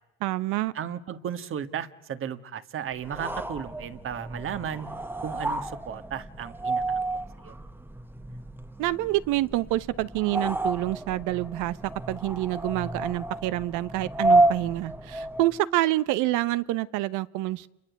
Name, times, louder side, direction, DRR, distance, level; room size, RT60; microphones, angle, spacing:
voice 1, 0.2-0.7 8.8-11.8 12.1-17.7, right 16 dB, 85° right, 1.0 m, -27 dB
voice 2, 0.7-4.9 5.2-7.0 7.4-7.5, right 8 dB, 45° right, 1.6 m, -35 dB
sound 1, 3.0-15.6, right 2 dB, 5° right, 1.0 m, -30 dB
29.0 x 23.0 x 8.3 m
cardioid pair, 115°, 30 cm